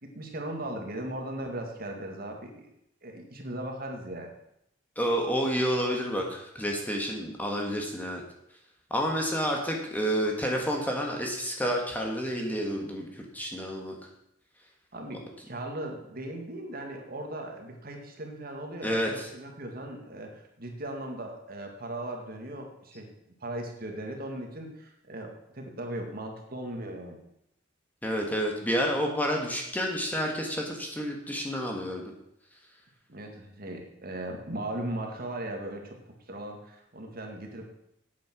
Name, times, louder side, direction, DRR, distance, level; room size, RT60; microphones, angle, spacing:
voice 1, 0.0-2.7 3.0-4.3 14.9-23.1 23.4-27.2 33.1-37.7, right 1 dB, 50° right, 2 dB, 2.0 m, -38 dB
voice 2, 5.0-8.2 8.9-14.0 18.8-19.3 28.0-32.1, equal, 10° left, 1 dB, 1.6 m, -29 dB
9.1 x 8.8 x 6.1 m, 0.78 s
head